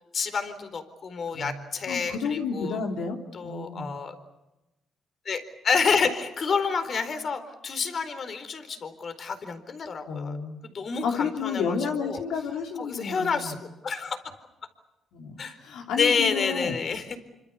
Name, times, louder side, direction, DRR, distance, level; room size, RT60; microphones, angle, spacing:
voice 1, 0.1-2.8 3.3-4.1 5.2-10.4 10.6-12.2 12.8-13.6 13.8-14.2 15.4-15.6 16.0-17.2, left 5 dB, 50° left, 10 dB, 4.2 m, -29 dB
voice 2, 1.9-3.2 3.4-4.0 10.1-10.6 11.0-13.5 15.1-16.7, left 5 dB, 85° left, 2 dB, 3.3 m, -31 dB
27.5 x 25.5 x 7.1 m, 0.97 s
cardioid pair, 90°, 0 cm